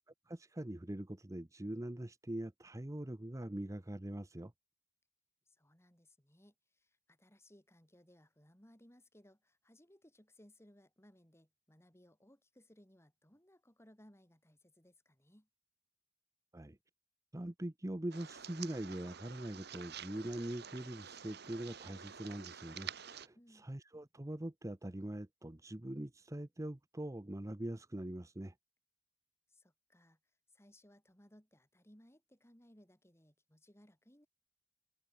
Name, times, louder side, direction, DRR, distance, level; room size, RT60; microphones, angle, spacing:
voice 1, 0.3-4.5 16.5-16.8 17.3-28.5, right 1 dB, 15° right, 0.8 m, -43 dB
voice 2, 5.5-15.5 23.3-23.7 29.5-30.2 30.5-34.3, equal, 15° left, 5.6 m, -64 dB
sound 1, 18.1-23.3, right 8 dB, 60° right, 1.6 m, -49 dB
head